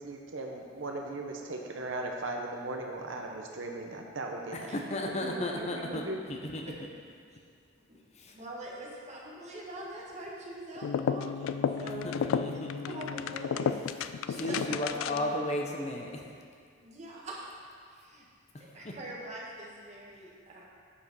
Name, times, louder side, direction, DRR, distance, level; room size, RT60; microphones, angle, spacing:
voice 1, 0.0-6.2, right 2 dB, 75° right, 1 dB, 0.8 m, -38 dB
voice 2, 4.5-6.0 6.3-6.6 8.1-8.4 12.0-13.2 14.4-16.3 18.5-18.9, left 1 dB, 35° left, 1 dB, 0.6 m, -35 dB
voice 3, 8.3-12.1 12.5-12.6 12.9-14.0 14.3-15.3 16.8-17.5 17.9-18.3 18.6-20.7, right 1 dB, 35° right, -4 dB, 1.4 m, -43 dB
sound 1, 10.8-15.4, left 7 dB, 85° left, 0.3 m, -32 dB
8.5 x 5.0 x 5.3 m, 2.2 s
head